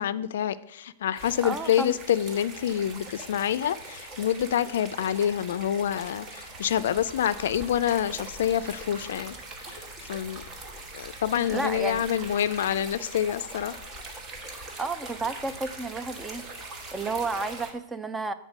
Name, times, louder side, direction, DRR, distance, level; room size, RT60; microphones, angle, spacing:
voice 1, 0.0-10.4 10.9-13.8, left 10 dB, 80° left, 15 dB, 0.3 m, -27 dB
sound 1, 1.2-17.7, right 2 dB, 30° right, 1.2 m, -42 dB
voice 2, 1.4-2.0 11.5-12.0 14.8-16.4 16.9-18.3, right 3 dB, 15° right, 12 dB, 0.4 m, -31 dB
6.4 x 3.9 x 6.1 m, 0.82 s
hypercardioid pair, 130°, 0 cm